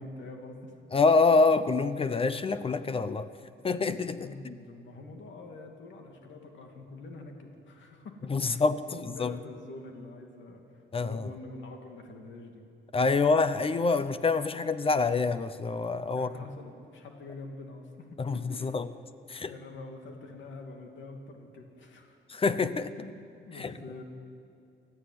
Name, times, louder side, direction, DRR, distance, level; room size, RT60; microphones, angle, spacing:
voice 1, 0.0-0.8 4.0-8.6 8.9-12.6 13.2-13.3 16.1-18.7 19.4-22.2 23.0-23.1 23.5-24.0, left 2 dB, 70° left, 3 dB, 2.7 m, -45 dB
voice 2, 0.9-3.3 3.6-4.5 8.3-9.4 10.9-11.3 12.9-16.3 18.2-18.4 18.6-18.9 19.3-19.5 22.3-22.9 23.5-23.7, left 4 dB, 30° left, 13 dB, 0.7 m, -26 dB
29.5 x 13.5 x 9.4 m, 2.5 s
cardioid pair, 145°, 20 cm